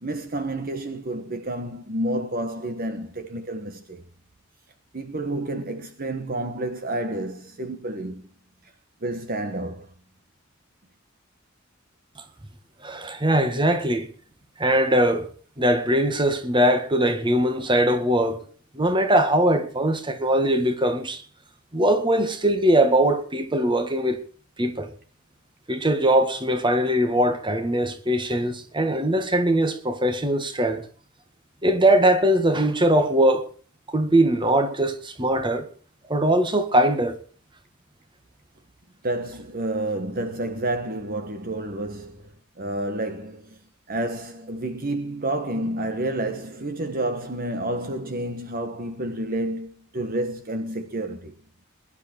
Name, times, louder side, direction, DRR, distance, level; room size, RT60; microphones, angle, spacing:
voice 1, 0.0-4.0 4.9-8.2 9.0-9.9 39.0-42.2 42.6-43.6 43.9-51.3, right 1 dB, 45° right, 1.3 m, -29 dB
voice 2, 12.8-14.1 14.6-15.3 15.6-18.4 18.7-21.2 21.7-24.2 24.6-24.9 25.7-30.9 31.6-33.5 33.9-35.7 36.1-37.2, right 1 dB, 25° right, 1.8 m, -21 dB
21.5 x 11.0 x 4.5 m
head